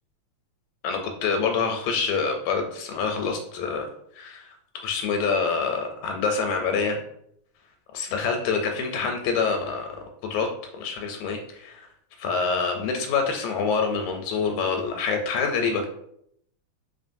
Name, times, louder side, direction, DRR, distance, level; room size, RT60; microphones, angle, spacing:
voice 1, 0.8-3.9 4.2-7.0 7.9-9.9 10.2-10.5 10.7-11.9 12.2-15.9, left 5 dB, 85° left, 3 dB, 1.9 m, -26 dB
4.0 x 3.6 x 2.5 m, 0.72 s
omnidirectional pair, 3.3 m